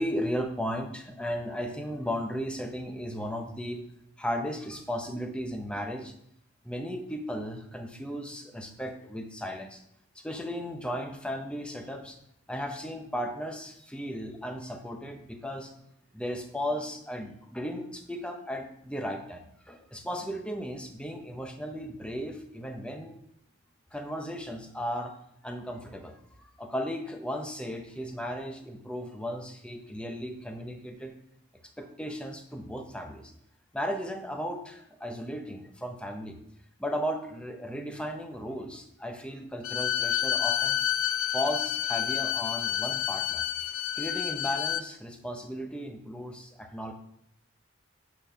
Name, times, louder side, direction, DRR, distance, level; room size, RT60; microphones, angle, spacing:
voice 1, 0.0-3.8 4.2-6.1 6.6-9.8 10.2-12.2 12.5-15.7 16.1-23.2 23.9-25.1 25.4-31.1 31.8-33.3 33.7-36.4 36.8-40.8 41.3-43.4 43.9-46.9, equal, 5° left, 4 dB, 0.8 m, -35 dB
Bowed string instrument, 39.6-44.9, left 11 dB, 80° left, 0.4 m, -29 dB
9.3 x 4.3 x 5.6 m, 0.73 s
head